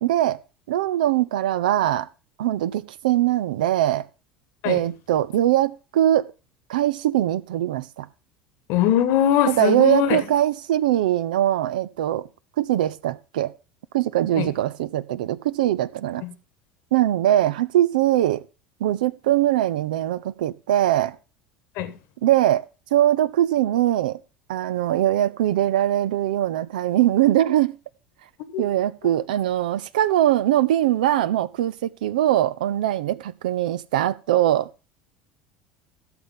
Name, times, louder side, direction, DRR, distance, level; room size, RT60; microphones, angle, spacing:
voice 1, 0.0-0.4 0.7-2.1 2.4-4.1 4.6-6.3 6.7-8.1 9.5-12.3 12.6-13.5 13.9-16.2 16.9-18.4 18.8-21.2 22.2-22.6 22.9-24.2 24.5-27.7 28.6-34.7, right 13 dB, 65° right, 0.5 m, -21 dB
voice 2, 8.7-10.2 14.4-14.5 16.2-16.3 21.8-22.0 28.4-28.6, left 10 dB, 55° left, 1.4 m, -21 dB
15.5 x 6.6 x 3.8 m
figure-of-eight pair, 70°, 5 cm